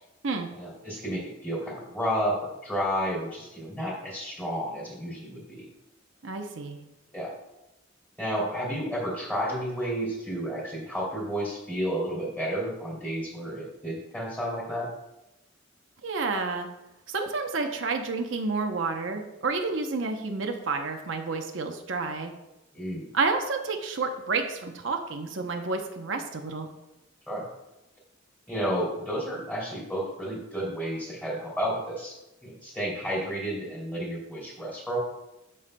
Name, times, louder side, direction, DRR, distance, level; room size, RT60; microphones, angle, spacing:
voice 1, 0.5-5.7 7.1-7.3 8.2-14.9 22.7-23.1 27.3-27.5 28.5-35.0, equal, 10° left, -3 dB, 2.9 m, -31 dB
voice 2, 6.2-6.8 16.0-16.7 17.1-22.3 23.1-26.7, right 4 dB, 75° right, 4 dB, 0.8 m, -30 dB
13.0 x 5.6 x 2.2 m, 0.94 s
head